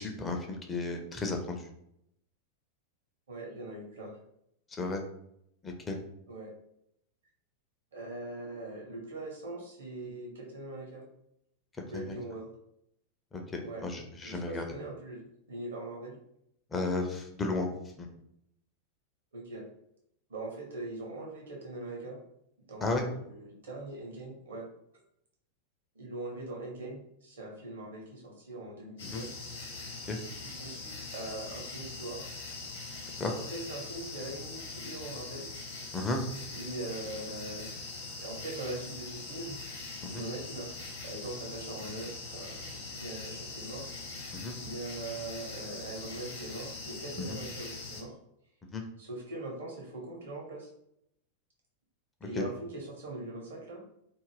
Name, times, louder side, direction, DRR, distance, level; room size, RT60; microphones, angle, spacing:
voice 1, 0.0-1.7 4.8-5.0 5.6-6.0 11.9-12.2 13.3-14.6 16.7-17.7 18.0-18.1 22.8-23.1 29.0-29.2 30.1-30.2 33.2-33.3 35.9-36.2 40.1-40.2 44.3-44.6 47.2-47.4 48.7-48.8 52.3-52.4, left 3 dB, 15° left, 3 dB, 0.4 m, -33 dB
voice 2, 3.3-4.1 6.3-6.5 7.9-11.1 11.8-12.5 13.6-13.8 14.2-16.2 19.3-19.7 20.3-22.2 22.7-24.7 25.9-29.3 30.4-32.2 33.3-35.5 36.5-37.7 38.2-39.6 40.0-40.7 41.0-43.9 44.6-48.2 49.0-50.7 52.2-53.8, right 2 dB, 65° right, -1 dB, 0.9 m, -41 dB
sound 1, 29.0-48.0, left 3 dB, 65° left, 0.9 m, -42 dB
2.5 x 2.1 x 3.3 m, 0.77 s
figure-of-eight pair, 90°, 0 cm